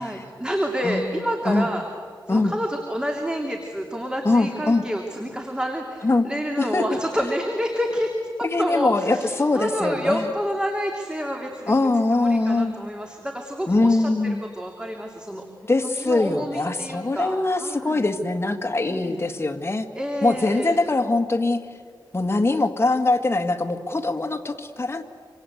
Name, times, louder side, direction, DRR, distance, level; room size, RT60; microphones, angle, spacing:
voice 1, 0.0-1.9 2.3-8.1 8.6-11.7 12.1-14.1 14.6-15.4 16.0-18.0 18.8-19.2 19.9-20.8, equal, 10° right, 2 dB, 2.8 m, -28 dB
voice 2, 0.8-1.7 2.3-2.5 4.2-4.8 6.0-6.3 6.6-6.9 8.4-10.3 11.7-12.8 13.7-14.4 15.7-19.9 20.2-21.6 22.1-25.0, left 2 dB, 30° left, 5 dB, 2.0 m, -22 dB
26.5 x 26.5 x 8.1 m, 2.1 s
wide cardioid pair, 75°, 8 cm